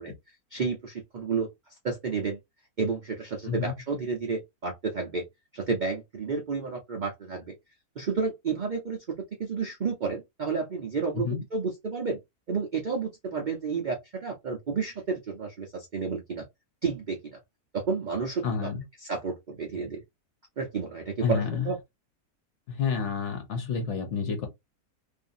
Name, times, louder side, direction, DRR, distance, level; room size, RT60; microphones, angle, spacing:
voice 1, 0.0-1.5 1.8-2.4 2.8-5.3 5.5-7.5 8.0-12.2 12.5-16.4 16.8-17.4 17.7-18.7 19.0-20.0 20.6-21.8, right 5 dB, 65° right, 0.4 m, -31 dB
voice 2, 18.4-18.8 21.2-21.7 22.7-24.5, left 6 dB, 55° left, 0.9 m, -29 dB
2.6 x 2.5 x 2.5 m
omnidirectional pair, 1.7 m